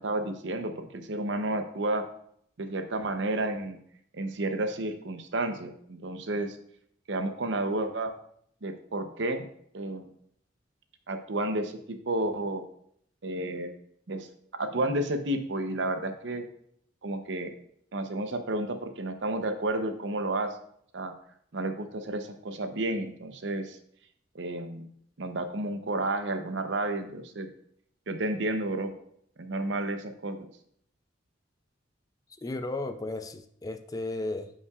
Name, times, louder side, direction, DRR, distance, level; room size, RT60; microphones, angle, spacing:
voice 1, 0.0-2.1 2.6-3.8 4.1-6.6 7.1-8.1 8.6-9.5 9.7-10.1 11.1-12.6 13.2-13.7 14.1-16.5 17.0-17.5 17.9-20.6 20.9-21.1 21.5-23.8 24.3-24.9 25.2-27.5 28.1-28.9 29.4-30.5, right 2 dB, 70° right, 7 dB, 0.7 m, -31 dB
voice 2, 32.4-34.5, left 2 dB, 20° left, 9 dB, 0.4 m, -34 dB
9.6 x 5.5 x 2.4 m, 0.67 s
head